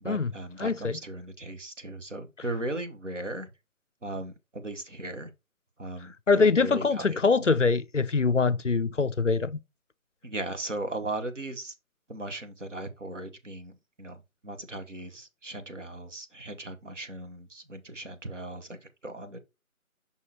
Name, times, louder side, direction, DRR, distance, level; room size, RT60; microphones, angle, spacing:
voice 1, 0.0-3.5 4.0-5.3 5.8-7.5 10.2-11.7 12.1-19.4, right 2 dB, 55° right, 1.2 m, -37 dB
voice 2, 0.6-1.0 6.3-9.6, left 4 dB, 60° left, 0.6 m, -24 dB
6.3 x 5.5 x 2.9 m
figure-of-eight pair, 175°, 43 cm